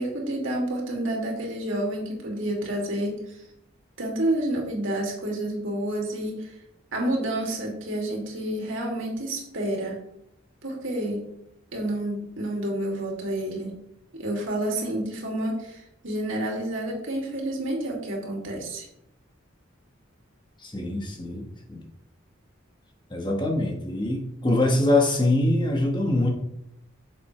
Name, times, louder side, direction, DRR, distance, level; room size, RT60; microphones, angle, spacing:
voice 1, 0.0-3.4 4.0-6.5 6.9-10.0 10.6-11.3 11.7-13.7 14.2-18.9, right 1 dB, 75° right, -1 dB, 2.7 m, -29 dB
voice 2, 20.6-21.8 23.1-26.3, left 2 dB, 20° left, 1 dB, 1.4 m, -24 dB
9.3 x 6.9 x 3.3 m, 0.80 s
head